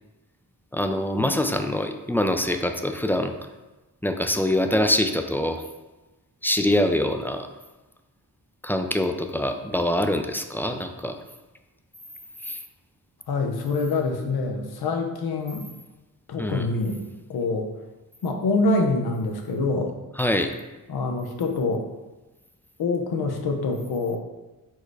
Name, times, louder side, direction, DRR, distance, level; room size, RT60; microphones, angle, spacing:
voice 1, 0.7-3.3 4.0-5.6 6.4-7.5 8.6-11.2 12.4-12.6 16.4-16.7 20.2-20.5, left 1 dB, 5° left, 6 dB, 0.3 m, -24 dB
voice 2, 13.3-15.7 16.3-17.0 17.3-17.7 18.2-20.0 20.9-21.8 22.8-24.2, left 3 dB, 80° left, 3 dB, 0.7 m, -25 dB
4.5 x 2.1 x 4.6 m, 1.1 s
cardioid pair, 50°, 37 cm